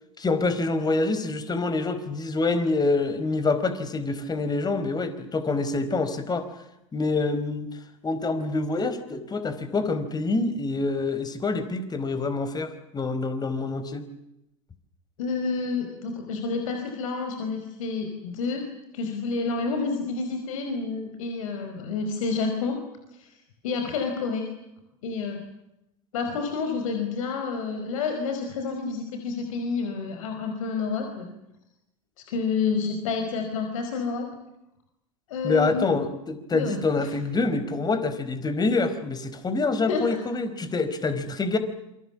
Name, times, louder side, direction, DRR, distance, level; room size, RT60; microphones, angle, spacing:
voice 1, 0.2-6.5 6.9-7.7 8.0-14.1 35.4-41.6, left 3 dB, 25° left, 11 dB, 4.5 m, -26 dB
voice 2, 15.2-18.6 18.9-22.8 23.2-23.4 23.6-24.5 25.0-25.4 26.1-31.3 32.3-34.3 35.3-35.9 36.5-37.1 39.9-40.2, left 4 dB, 75° left, 5 dB, 5.1 m, -29 dB
28.0 x 24.5 x 7.3 m, 0.86 s
hypercardioid pair, 85°, 17 cm